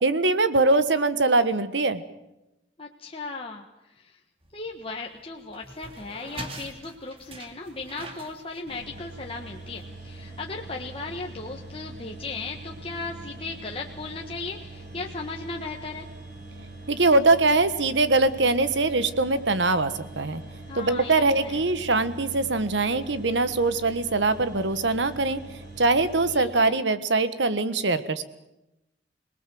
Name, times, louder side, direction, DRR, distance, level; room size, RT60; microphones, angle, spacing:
voice 1, 0.0-2.0 16.9-20.4 20.8-25.4 25.8-28.2, right 3 dB, 85° right, 12 dB, 1.4 m, -22 dB
voice 2, 2.8-4.2 4.5-16.1 20.7-21.6 26.3-26.8, left 3 dB, 30° left, 0 dB, 1.5 m, -37 dB
sound 1, 4.4-9.8, right 2 dB, 30° right, 2.3 m, -44 dB
sound 2, 8.7-26.4, right 2 dB, 60° right, 7.5 m, -43 dB
26.0 x 19.5 x 7.8 m, 0.93 s
head